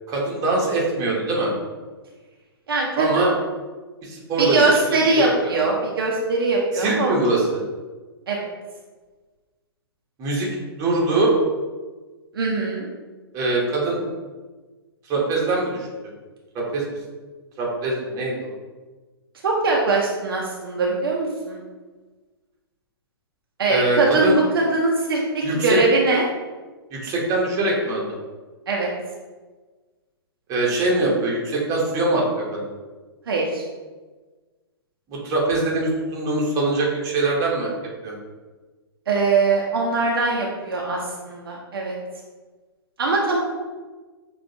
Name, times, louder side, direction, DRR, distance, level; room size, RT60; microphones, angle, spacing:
voice 1, 0.1-1.5 3.0-3.3 4.0-4.7 5.2-5.3 6.7-7.6 10.2-10.5 10.8-11.4 13.3-14.0 15.1-15.9 16.5-16.8 17.6-18.5 23.7-24.4 25.4-25.8 26.9-28.2 30.5-32.7 35.1-37.7 38.0-38.1, right 2 dB, 25° right, -3 dB, 1.1 m, -22 dB
voice 2, 2.7-3.4 4.4-7.2 8.3-8.5 12.3-12.9 19.4-21.6 23.6-26.2 28.7-28.9 33.3-33.6 39.1-41.9 43.0-43.4, right 3 dB, 60° right, -2 dB, 0.7 m, -21 dB
6.2 x 2.5 x 2.8 m, 1.3 s
figure-of-eight pair, 115°, 13 cm